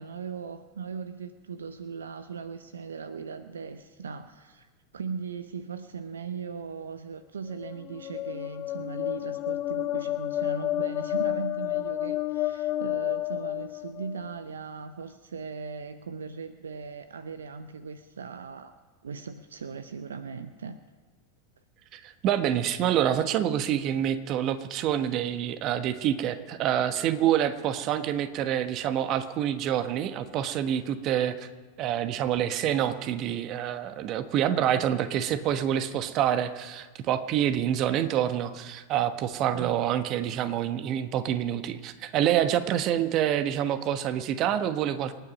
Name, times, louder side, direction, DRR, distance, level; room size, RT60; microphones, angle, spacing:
voice 1, 0.0-4.7 4.9-18.7 19.0-20.8 39.5-39.8, right 5 dB, 80° right, 12 dB, 0.7 m, -38 dB
sound 1, 7.5-14.3, left 15 dB, 40° left, 0.4 m, -30 dB
voice 2, 21.9-31.5 31.8-45.1, right 10 dB, 45° right, 11 dB, 1.2 m, -27 dB
27.5 x 9.1 x 5.3 m, 1.3 s
figure-of-eight pair, 90°, 0 cm